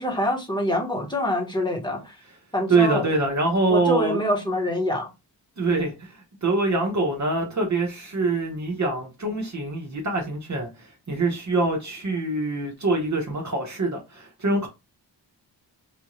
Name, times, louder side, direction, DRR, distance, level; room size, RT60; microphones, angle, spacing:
voice 1, 0.0-2.1 2.5-3.1 3.7-5.1, left 1 dB, 10° left, 1.2 m, -25 dB
voice 2, 2.7-4.2 5.6-14.7, right 3 dB, 40° right, 0.9 m, -24 dB
4.9 x 2.6 x 3.0 m
wide cardioid pair, 170°, 43 cm